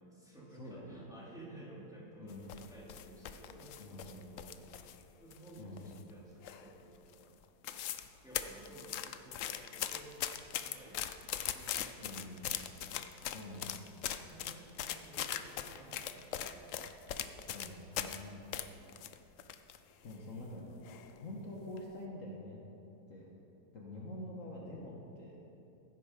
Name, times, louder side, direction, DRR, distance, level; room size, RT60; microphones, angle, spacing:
voice 1, 0.0-7.9 8.2-11.1 11.4-12.7 13.2-13.4 14.0-16.8 17.2-17.7 18.6-19.1 23.9-24.2, right 1 dB, ahead, -5 dB, 2.5 m, -55 dB
voice 2, 0.5-1.1 2.2-2.4 3.8-4.1 5.6-5.9 12.0-12.4 13.3-13.7 17.5-18.4 20.0-20.6 21.2-22.6 23.1-23.3 23.7-25.4, left 1 dB, 50° left, -3 dB, 1.7 m, -46 dB
sound 1, 2.3-5.0 5.3-6.1 6.4-6.8 7.1-7.2 7.4-8.1 8.3-18.2 18.5-19.8 20.1-20.2 20.8-21.2 21.6-21.8, left 10 dB, 65° left, 0.8 m, -40 dB
15.5 x 9.6 x 5.2 m, 2.7 s
omnidirectional pair, 1.8 m